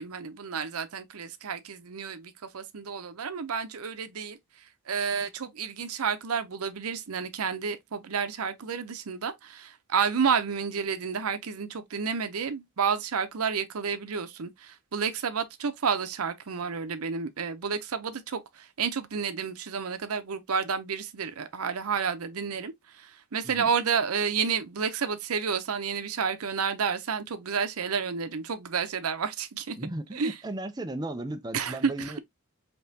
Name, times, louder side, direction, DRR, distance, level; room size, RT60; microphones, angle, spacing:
voice 1, 0.0-4.4 4.9-29.8 30.1-30.4 31.5-32.2, right 6 dB, 85° right, 0.7 m, -30 dB
voice 2, 29.8-32.2, right 1 dB, 20° right, 0.5 m, -35 dB
5.3 x 2.9 x 2.7 m
head